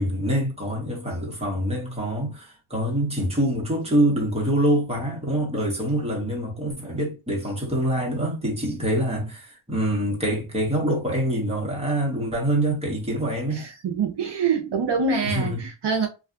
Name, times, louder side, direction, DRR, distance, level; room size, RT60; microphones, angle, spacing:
voice 1, 0.0-13.7 15.2-15.6, right 1 dB, 10° right, 1.1 m, -25 dB
voice 2, 13.5-16.1, right 5 dB, 55° right, 0.6 m, -25 dB
2.7 x 2.4 x 2.4 m
wide cardioid pair, 100°, 50 cm